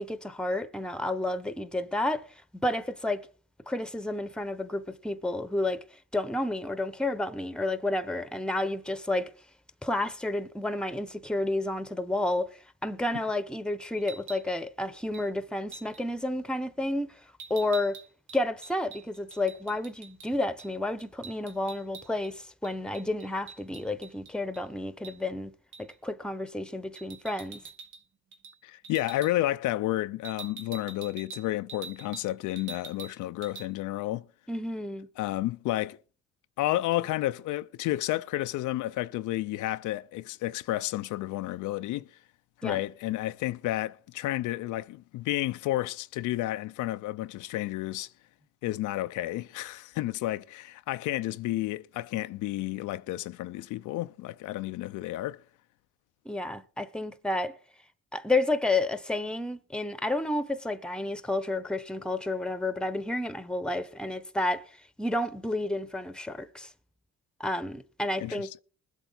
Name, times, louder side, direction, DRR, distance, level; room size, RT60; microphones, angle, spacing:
voice 1, 0.0-2.3 2.6-3.3 3.7-5.8 6.1-9.3 9.8-17.2 17.5-18.0 18.3-25.5 25.8-27.6 34.5-35.1 42.6-42.8 56.2-57.5 58.1-64.7 65.0-66.7 67.4-68.5, left 2 dB, 5° left, 0.9 m, -31 dB
sound 1, 14.0-14.5 15.1-15.3 15.7-16.0 17.4-20.3 20.6-20.7 21.0-22.3 22.6-24.6 25.0-25.2 25.7-26.0 27.0-28.0 28.3-28.6 28.8-29.3 30.2-32.3 32.6-33.2 33.4-33.7, right 6 dB, 85° right, 1.3 m, -45 dB
voice 2, 28.6-34.3 35.2-36.0 36.6-42.1 42.6-48.1 48.6-55.4 68.2-68.4, left 15 dB, 85° left, 0.5 m, -31 dB
21.0 x 8.2 x 3.9 m
cardioid pair, 90°, 30 cm